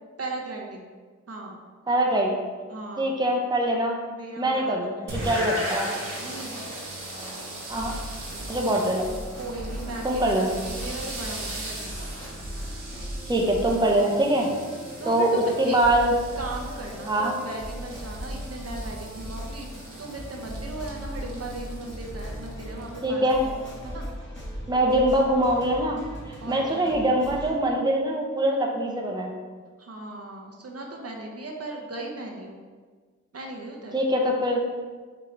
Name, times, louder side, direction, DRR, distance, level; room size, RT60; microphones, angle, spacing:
voice 1, 0.2-0.9 1.3-1.6 2.7-3.2 4.1-5.1 6.2-6.6 8.3-8.7 9.3-12.1 15.0-15.8 16.4-24.1 26.4-27.0 29.8-32.6 33.3-34.0, right 2 dB, 50° right, 0 dB, 0.7 m, -37 dB
voice 2, 1.9-2.4 3.0-4.0 4.4-5.9 7.7-7.9 8.5-9.1 10.0-10.5 13.3-14.5 15.1-16.1 17.1-17.3 23.0-23.4 24.7-26.0 26.5-29.3 33.9-34.6, right 1 dB, 15° right, 0 dB, 0.7 m, -23 dB
sound 1, 5.1-23.0, right 1 dB, 85° right, 1.2 m, -38 dB
sound 2, 7.7-27.5, equal, 40° left, 1.4 m, -38 dB
4.5 x 2.9 x 3.8 m, 1.5 s
cardioid pair, 40°, 31 cm